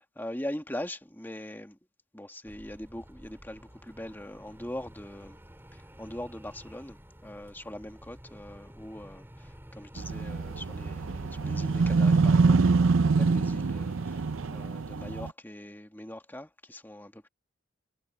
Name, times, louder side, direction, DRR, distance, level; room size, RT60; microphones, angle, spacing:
voice 1, 0.0-1.8 2.1-5.4 5.7-17.3, left 1 dB, 10° left, 1.9 m, -42 dB
sound 1, 2.4-14.7, equal, 10° right, 6.0 m, -50 dB
sound 2, 10.0-15.3, right 4 dB, 90° right, 0.6 m, -25 dB
head